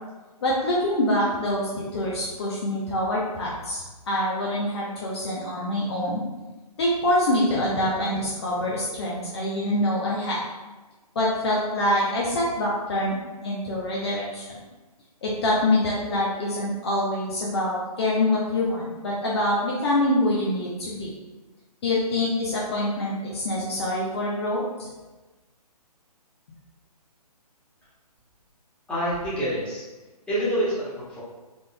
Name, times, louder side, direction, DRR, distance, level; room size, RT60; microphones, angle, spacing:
voice 1, 0.4-6.2 6.8-10.4 11.1-13.2 13.4-14.5 15.2-21.1 21.8-24.9, left 1 dB, 40° left, -5 dB, 0.7 m, -25 dB
voice 2, 28.9-29.8 30.3-31.2, equal, 5° left, -11 dB, 1.3 m, -27 dB
3.9 x 3.5 x 2.2 m, 1.2 s
figure-of-eight pair, 140°, 20 cm